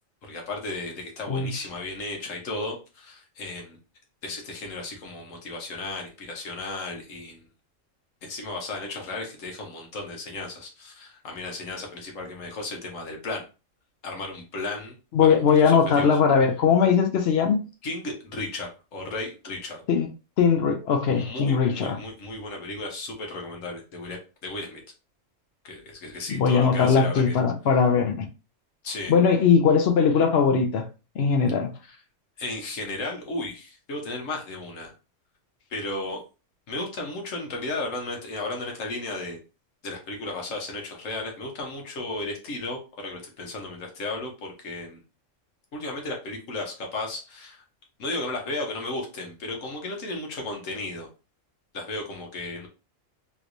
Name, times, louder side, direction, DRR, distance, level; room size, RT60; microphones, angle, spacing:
voice 1, 0.2-3.8 4.2-7.4 8.2-13.5 14.0-16.1 17.8-19.8 21.1-24.8 25.6-27.4 28.8-29.1 31.9-32.0 32.4-34.9 35.7-36.2 36.7-39.4 39.8-45.0 45.7-47.6 48.0-51.1 51.7-52.7, left 2 dB, 80° left, 1.4 m, -34 dB
voice 2, 1.3-1.6 15.1-17.6 19.9-20.1 20.4-22.0 26.3-28.3 29.1-30.8 31.2-31.7, left 6 dB, 60° left, 0.8 m, -20 dB
3.2 x 3.0 x 2.5 m
omnidirectional pair, 1.3 m